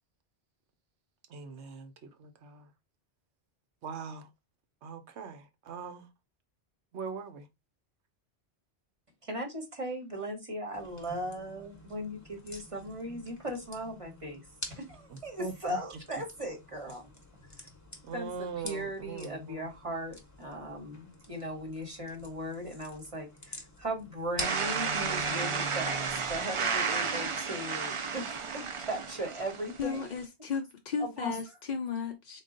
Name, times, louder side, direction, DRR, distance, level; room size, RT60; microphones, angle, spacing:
voice 1, 1.3-2.7 3.8-4.3 4.8-6.1 6.9-7.5 15.1-15.8 18.0-19.7, right 5 dB, 85° right, 1.0 m, -41 dB
voice 2, 9.2-14.4 14.7-17.1 18.1-30.1 31.0-31.3, right 1 dB, 30° right, 1.1 m, -38 dB
sound 1, 10.7-26.9, left 2 dB, 20° left, 0.7 m, -48 dB
sound 2, 24.4-30.2, right 5 dB, 50° right, 0.3 m, -32 dB
voice 3, 29.8-32.4, left 6 dB, 55° left, 0.5 m, -35 dB
3.8 x 2.3 x 3.7 m
omnidirectional pair, 1.1 m